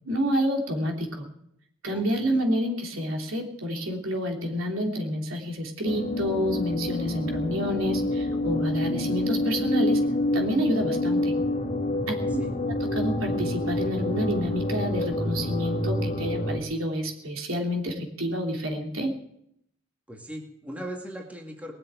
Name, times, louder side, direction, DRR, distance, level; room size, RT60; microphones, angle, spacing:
voice 1, 0.0-1.2 1.8-10.0 10.3-11.3 12.1-12.2 12.6-19.1, equal, 70° right, 1 dB, 3.2 m, -28 dB
voice 2, 1.9-2.4 12.4-12.5 20.1-21.7, equal, 5° right, 0 dB, 2.1 m, -39 dB
sound 1, 5.8-16.6, left 1 dB, 30° left, 2.1 m, -27 dB
20.5 x 7.7 x 9.0 m, 0.75 s
head